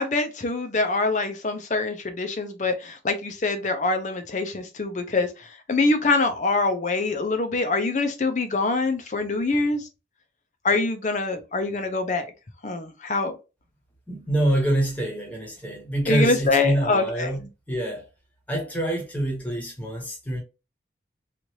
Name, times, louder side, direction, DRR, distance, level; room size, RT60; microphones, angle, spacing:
voice 1, 0.0-5.3 5.7-9.9 10.6-12.3 12.6-13.3 16.1-17.3, left 3 dB, 40° left, 0.5 m, -24 dB
voice 2, 14.1-18.0 18.5-20.4, right 1 dB, 10° left, 1.0 m, -26 dB
3.0 x 2.5 x 2.8 m
head